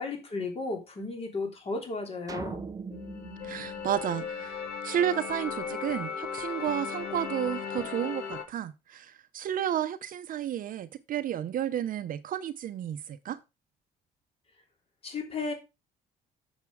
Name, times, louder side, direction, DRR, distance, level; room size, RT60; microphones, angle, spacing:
voice 1, 0.0-2.7 15.0-15.5, left 3 dB, 35° left, 3.3 m, -34 dB
sound 1, 2.3-4.7, right 5 dB, 20° right, 0.7 m, -41 dB
sound 2, 2.9-8.4, left 6 dB, 70° left, 1.8 m, -36 dB
voice 2, 3.4-13.4, right 10 dB, 55° right, 0.8 m, -32 dB
7.3 x 7.0 x 4.8 m
cardioid pair, 110°, 17 cm